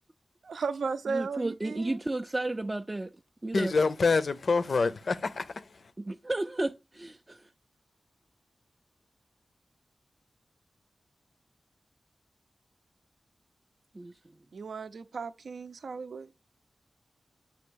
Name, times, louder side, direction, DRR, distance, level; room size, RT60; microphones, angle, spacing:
voice 1, 0.4-2.0 14.5-16.3, right 5 dB, 85° right, 0.5 m, -35 dB
voice 2, 1.1-3.1 3.4-3.7 6.0-7.5 13.9-14.2, right 2 dB, 25° right, 0.3 m, -33 dB
voice 3, 3.5-5.6, left 4 dB, 65° left, 0.5 m, -26 dB
8.2 x 2.8 x 6.2 m
wide cardioid pair, 95°, 0 cm